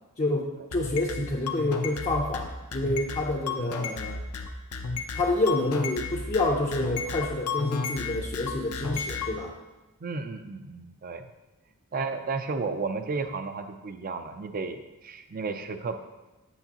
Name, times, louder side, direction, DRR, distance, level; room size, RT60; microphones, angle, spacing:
voice 1, 0.2-4.2 5.1-9.6, left 2 dB, 30° left, -2 dB, 0.6 m, -28 dB
sound 1, 0.7-9.3, left 4 dB, 70° left, 0.7 m, -33 dB
voice 2, 10.0-11.3 11.9-16.0, right 4 dB, 40° right, 8 dB, 0.5 m, -33 dB
8.1 x 6.8 x 2.9 m, 1.1 s
head